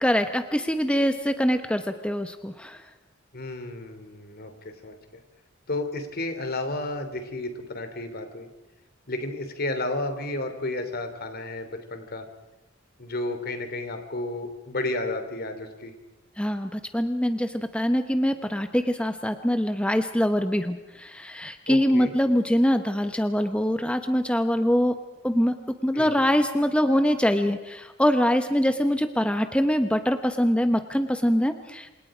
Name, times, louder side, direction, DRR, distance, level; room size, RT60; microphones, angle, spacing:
voice 1, 0.0-2.8 16.4-25.0 25.2-31.9, equal, 5° left, 8 dB, 0.9 m, -24 dB
voice 2, 3.3-4.5 4.8-5.2 5.7-8.5 9.1-12.3 13.0-15.9 21.7-22.1 25.9-26.2, left 2 dB, 50° left, 7 dB, 3.2 m, -32 dB
28.0 x 27.0 x 5.0 m, 0.99 s
head